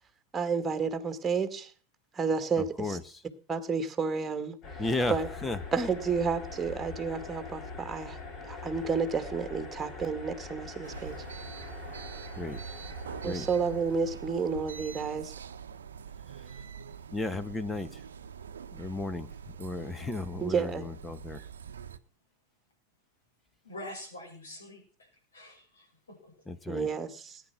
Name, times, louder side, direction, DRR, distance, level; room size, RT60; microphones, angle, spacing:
voice 1, 0.3-1.7 2.1-3.0 3.5-4.6 5.1-5.3 5.7-8.2 8.4-11.1 13.2-15.3 20.4-20.8 26.7-27.4, right 5 dB, 15° right, 2.1 m, -31 dB
voice 2, 2.6-3.2 4.8-5.6 12.4-12.6 13.2-13.5 16.4-16.5 17.1-18.0 18.7-19.3 19.6-21.4 26.5-26.9, left 2 dB, 10° left, 1.2 m, -34 dB
sound 1, 4.6-14.9, left 4 dB, 30° left, 4.7 m, -44 dB
sound 2, 10.8-22.0, right 7 dB, 65° right, 0.9 m, -44 dB
voice 3, 23.6-26.3, left 1 dB, 75° left, 6.9 m, -46 dB
18.5 x 10.0 x 6.1 m
figure-of-eight pair, 90°, 0 cm